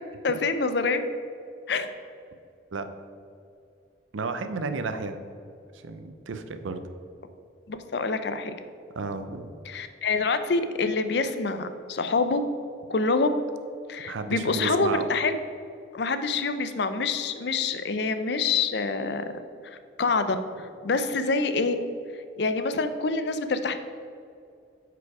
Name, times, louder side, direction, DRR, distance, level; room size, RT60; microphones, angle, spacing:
voice 1, 0.2-1.0 1.7-1.9 7.7-8.5 9.7-12.4 12.9-13.4 13.9-15.3 15.9-19.2 19.6-21.8 22.4-23.8, left 3 dB, 60° left, 10 dB, 0.5 m, -26 dB
voice 2, 4.1-5.2 5.7-6.8 8.9-9.5 14.1-15.1, right 3 dB, 85° right, 9 dB, 0.6 m, -32 dB
8.3 x 4.9 x 4.8 m, 2.5 s
head